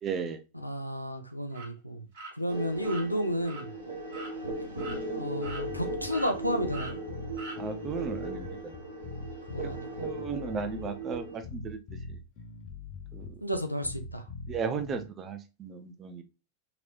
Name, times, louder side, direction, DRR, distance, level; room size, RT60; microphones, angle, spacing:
voice 1, 0.0-0.4 7.6-8.7 9.6-9.7 10.0-11.8 12.1-12.2 13.1-13.3 14.5-16.2, right 5 dB, 25° right, 0.5 m, -35 dB
voice 2, 0.5-2.1 2.3-3.7 5.1-7.0 9.5-10.1 13.4-14.2, equal, 90° left, 0.5 m, -32 dB
sound 1, 1.5-1.7 2.1-2.3 2.8-3.0 3.4-3.6 4.1-4.3 4.8-5.0 5.4-5.9 6.1-6.3 6.7-6.9 7.4-7.6, right 2 dB, 55° right, 1.5 m, -41 dB
sound 2, 2.5-11.4, right 1 dB, 85° right, 0.9 m, -38 dB
sound 3, 5.5-15.1, left 4 dB, 45° left, 0.7 m, -42 dB
3.0 x 2.9 x 2.4 m
figure-of-eight pair, 90°, 0 cm